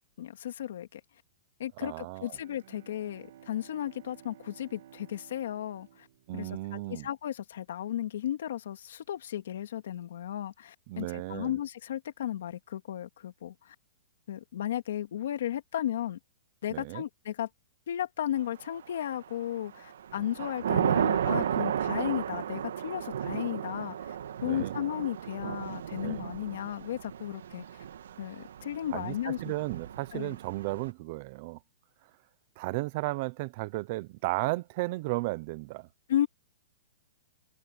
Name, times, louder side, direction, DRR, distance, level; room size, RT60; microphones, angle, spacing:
voice 1, 0.2-1.0 1.6-6.1 6.3-13.7 14.3-16.2 16.6-17.5 17.9-24.2 24.4-27.6 28.2-29.5 30.1-30.4 36.1-36.3, left 11 dB, 65° left, 2.1 m, -34 dB
voice 2, 1.8-2.4 6.3-7.1 10.9-11.6 16.7-17.0 24.4-24.7 26.0-26.2 28.9-31.6 32.6-35.9, right 21 dB, 35° right, 0.6 m, -34 dB
Bowed string instrument, 2.1-7.0, right 11 dB, 55° right, 2.2 m, -55 dB
Thunder / Rain, 18.8-19.3 19.8-30.9, right 9 dB, 80° right, 1.6 m, -33 dB
hypercardioid pair, 170°, 0 cm